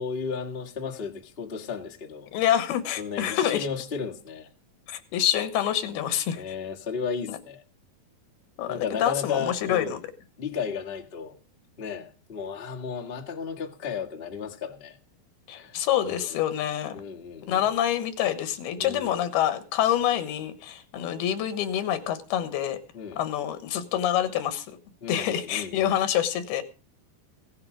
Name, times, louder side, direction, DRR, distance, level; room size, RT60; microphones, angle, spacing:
voice 1, 0.0-2.3 3.0-4.5 6.3-7.6 8.7-10.0 10.4-11.4 11.8-15.0 15.5-16.3 16.9-17.6 18.8-19.1 22.9-23.2 25.0-25.9, left 6 dB, 50° left, 0.7 m, -34 dB
voice 2, 2.3-3.7 4.9-6.5 7.3-7.4 8.6-10.0 15.5-17.0 17.5-22.8 23.2-24.7 25.1-26.6, left 11 dB, 85° left, 3.3 m, -26 dB
17.0 x 9.8 x 5.0 m
omnidirectional pair, 4.4 m